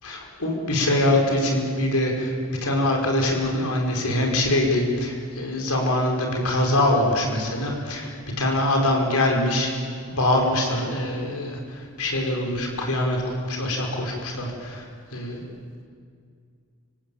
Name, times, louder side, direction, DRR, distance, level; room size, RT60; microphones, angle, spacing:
voice 1, 0.0-9.7 10.1-14.9 15.1-15.4, left 1 dB, 90° left, 1 dB, 5.3 m, -24 dB
27.0 x 17.5 x 8.8 m, 2.2 s
head